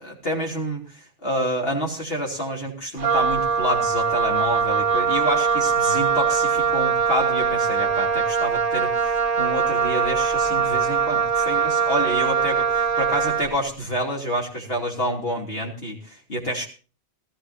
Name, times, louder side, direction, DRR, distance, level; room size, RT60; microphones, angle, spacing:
voice 1, 0.0-16.7, equal, 65° left, -1 dB, 3.2 m, -28 dB
Wind instrument woodwind instrument, 3.0-13.6, right 6 dB, 55° right, 0.9 m, -22 dB
18.0 x 15.0 x 2.7 m, 0.36 s
omnidirectional pair, 1.1 m